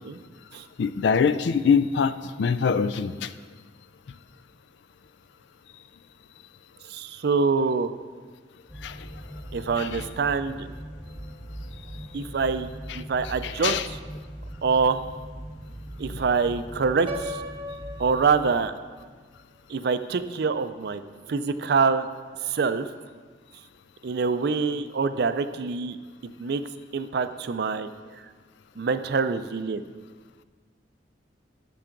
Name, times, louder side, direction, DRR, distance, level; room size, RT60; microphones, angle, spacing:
voice 1, 0.8-3.3 8.8-9.1 9.8-9.9 13.4-13.8, left 6 dB, 70° left, 13 dB, 0.4 m, -24 dB
voice 2, 6.9-7.9 9.5-10.7 12.1-12.7 12.9-14.0 14.6-15.0 16.0-17.4 18.0-18.7 19.7-21.0 21.3-22.1 22.4-22.9 24.0-26.0 26.2-26.6 26.9-28.2 28.8-29.8, right 5 dB, 60° right, 11 dB, 0.4 m, -25 dB
sound 1, 8.7-18.5, right 1 dB, 20° left, 1.8 m, -40 dB
Piano, 17.1-19.0, equal, 30° right, 0.9 m, -37 dB
11.5 x 6.8 x 3.8 m, 1.5 s
head